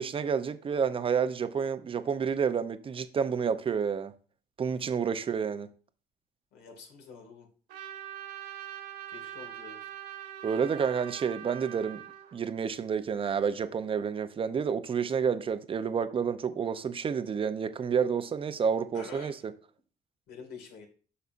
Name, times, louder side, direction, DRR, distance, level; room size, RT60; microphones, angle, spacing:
voice 1, 0.0-4.1 4.6-5.7 10.4-12.0 12.3-19.5, right 6 dB, 30° right, 0.6 m, -29 dB
voice 2, 6.5-7.5 9.1-9.8 18.9-19.3 20.3-20.9, left 5 dB, 75° left, 2.1 m, -47 dB
Trumpet, 7.7-12.4, right 12 dB, 85° right, 1.9 m, -43 dB
8.2 x 5.7 x 2.5 m
cardioid pair, 110°, 17 cm